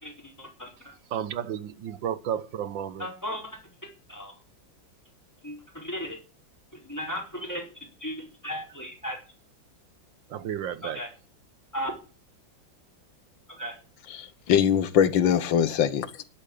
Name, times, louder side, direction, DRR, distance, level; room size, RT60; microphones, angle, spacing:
voice 1, 0.0-0.9 3.0-3.6 4.1-4.3 5.4-6.2 6.8-7.7 8.0-9.2 10.8-11.1 11.7-11.9 13.6-13.7, equal, 10° left, 4.2 m, -35 dB
voice 2, 1.1-3.1 10.3-11.0, right 9 dB, 80° right, 1.7 m, -32 dB
voice 3, 14.1-16.2, left 9 dB, 80° left, 1.8 m, -23 dB
11.0 x 8.7 x 8.6 m
omnidirectional pair, 2.0 m